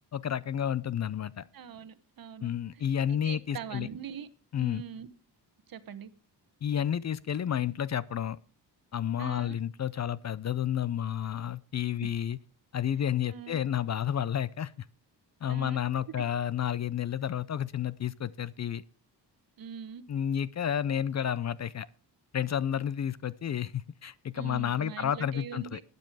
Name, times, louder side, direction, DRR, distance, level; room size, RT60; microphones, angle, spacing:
voice 1, 0.1-1.5 2.4-3.9 4.5-4.8 6.6-8.4 8.9-12.4 12.7-14.9 15.4-18.8 20.1-21.9 22.3-25.8, left 9 dB, 40° left, 0.5 m, -31 dB
voice 2, 1.5-2.5 3.1-4.3 4.6-5.1 5.7-6.1 9.2-9.6 13.3-13.6 15.5-15.8 16.2-16.3 19.6-20.0 24.3-25.8, right 8 dB, 55° right, 1.1 m, -42 dB
12.0 x 9.5 x 4.8 m
cardioid pair, 120°, 41 cm